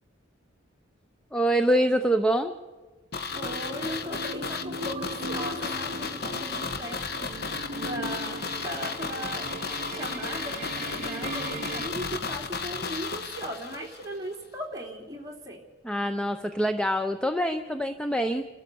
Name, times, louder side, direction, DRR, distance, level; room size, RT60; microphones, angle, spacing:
voice 1, 1.3-2.5 15.8-18.4, right 1 dB, 5° left, 7 dB, 0.6 m, -25 dB
sound 1, 3.1-14.1 14.3-14.4, left 5 dB, 55° left, 1.2 m, -34 dB
voice 2, 3.3-9.5 9.9-15.6, equal, 15° right, -1 dB, 3.2 m, -38 dB
sound 2, 3.3-11.9, right 2 dB, 45° right, 1.0 m, -38 dB
30.0 x 13.0 x 7.0 m, 1.3 s
head